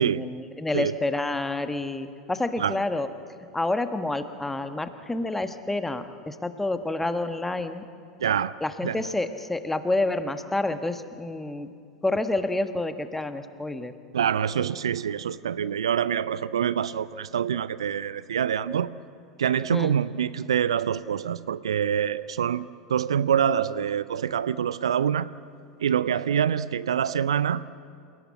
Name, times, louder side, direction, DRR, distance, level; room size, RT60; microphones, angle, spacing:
voice 1, 0.0-3.1 3.5-7.8 8.6-11.7 12.0-13.9 19.7-20.0, left 2 dB, 10° left, 9 dB, 1.3 m, -28 dB
voice 2, 8.2-8.5 8.8-8.9 14.1-18.9 19.4-25.3 25.8-27.6, right 8 dB, 70° right, 17 dB, 0.5 m, -25 dB
28.0 x 17.5 x 8.5 m, 2.3 s
figure-of-eight pair, 80°, 3 cm